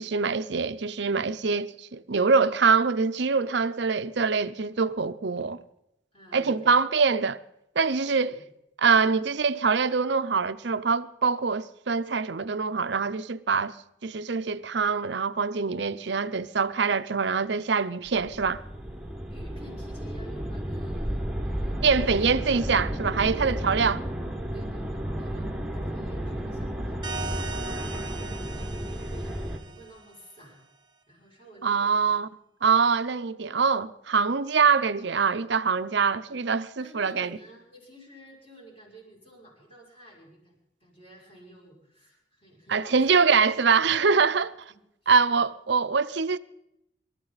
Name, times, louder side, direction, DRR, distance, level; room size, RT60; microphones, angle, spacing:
voice 1, 0.0-5.6 6.3-7.4 7.8-8.3 8.8-13.7 14.0-18.6 21.8-24.0 31.6-32.3 32.6-37.4 42.7-44.4 45.1-46.4, right 5 dB, 60° right, 0.6 m, -24 dB
voice 2, 6.1-6.8 8.0-8.5 8.9-9.2 19.3-22.2 23.3-23.8 24.5-30.6 31.1-32.2 36.8-43.4 43.8-44.4 45.0-45.1, right 1 dB, 30° left, 6.2 m, -51 dB
sound 1, 18.1-29.6, equal, 5° right, 1.4 m, -32 dB
sound 2, 27.0-30.4, right 3 dB, 25° right, 0.9 m, -39 dB
27.0 x 13.0 x 4.1 m
head